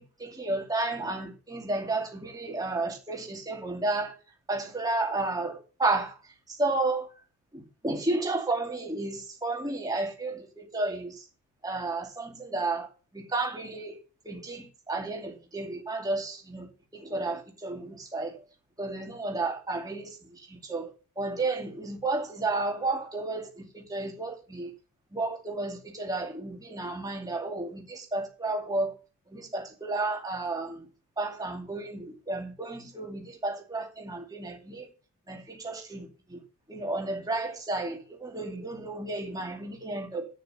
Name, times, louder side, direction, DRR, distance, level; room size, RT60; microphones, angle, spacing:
voice 1, 0.0-4.1 4.5-6.2 6.6-7.1 7.5-11.1 11.6-12.9 13.1-14.0 14.3-16.7 16.9-18.4 18.8-20.1 20.5-20.9 21.2-24.7 25.1-28.9 29.3-30.9 31.2-34.9 35.3-36.4 36.7-40.3, right 2 dB, 15° right, 2.4 m, -32 dB
8.2 x 6.7 x 6.7 m
head